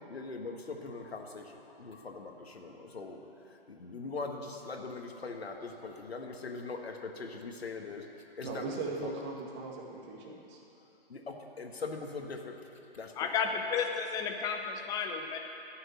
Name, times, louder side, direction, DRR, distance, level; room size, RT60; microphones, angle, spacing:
voice 1, 0.1-3.2 3.7-9.1 11.1-12.6 12.9-13.3, left 3 dB, 85° left, 3 dB, 1.5 m, -41 dB
voice 2, 8.4-10.6, right 3 dB, 30° right, -1 dB, 1.9 m, -39 dB
voice 3, 13.2-15.4, left 6 dB, 10° left, 4 dB, 0.6 m, -32 dB
11.5 x 6.5 x 9.3 m, 2.9 s
hypercardioid pair, 135°, 30 cm